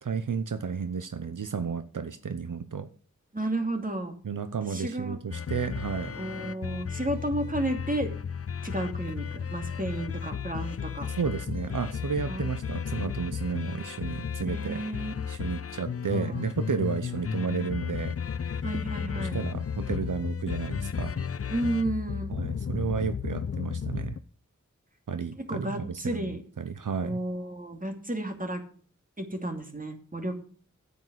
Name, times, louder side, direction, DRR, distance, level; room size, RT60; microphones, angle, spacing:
voice 1, 0.0-2.9 4.2-6.2 11.2-14.8 15.3-18.1 18.5-18.6 19.1-21.1 22.3-24.2 25.1-27.2, right 6 dB, 80° right, 10 dB, 0.8 m, -32 dB
voice 2, 3.3-4.2 4.7-5.2 6.2-8.1 8.6-9.3 9.5-11.1 12.3-12.5 14.4-15.1 16.1-16.4 18.6-19.4 21.5-22.3 25.5-26.4 27.0-28.6 29.2-30.4, right 1 dB, 25° right, 5 dB, 2.6 m, -32 dB
sound 1, 5.3-24.2, left 7 dB, 50° left, 0.5 m, -34 dB
9.2 x 8.3 x 6.3 m, 0.43 s
wide cardioid pair, 40°, 31 cm